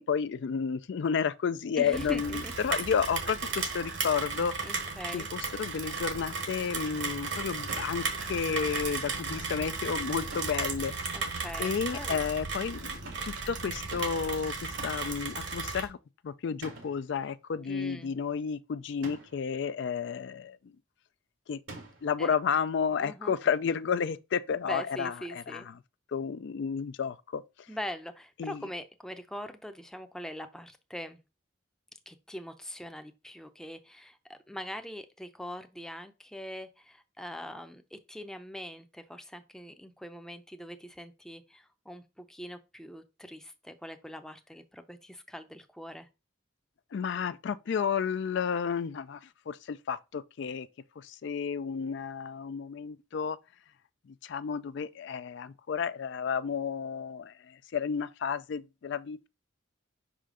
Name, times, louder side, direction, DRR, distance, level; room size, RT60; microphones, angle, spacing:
voice 1, 0.0-4.5 5.1-10.9 11.6-16.0 16.2-20.6 21.5-21.6 22.0-25.7 26.1-27.4 28.4-28.6 46.9-50.7 51.0-53.4 54.2-59.3, left 6 dB, 65° left, 0.4 m, -32 dB
voice 2, 1.7-2.5 4.6-5.3 11.1-12.2 17.7-18.1 22.2-22.3 23.0-23.4 24.6-25.7 27.7-31.2 32.1-46.1, equal, 5° left, 0.5 m, -42 dB
Rain, 1.9-15.9, right 4 dB, 65° right, 1.4 m, -35 dB
sound 1, 7.7-8.1 10.3-10.7 13.1-13.4 13.9-14.3 14.8-15.2 16.6-17.1 19.0-19.5 21.7-22.2, right 2 dB, 90° right, 2.2 m, -46 dB
5.5 x 5.0 x 3.8 m
head